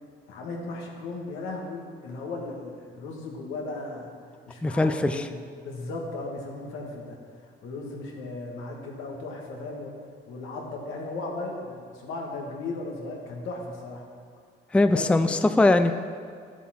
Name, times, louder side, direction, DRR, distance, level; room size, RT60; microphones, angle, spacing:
voice 1, 0.3-4.1 4.5-7.2 7.6-9.9 10.3-14.0 14.9-15.3, left 2 dB, 90° left, 0 dB, 1.7 m, -36 dB
voice 2, 4.6-5.2 14.7-15.9, left 2 dB, 5° left, 9 dB, 0.4 m, -21 dB
11.5 x 7.2 x 4.3 m, 2.1 s
cardioid pair, 90°, 20 cm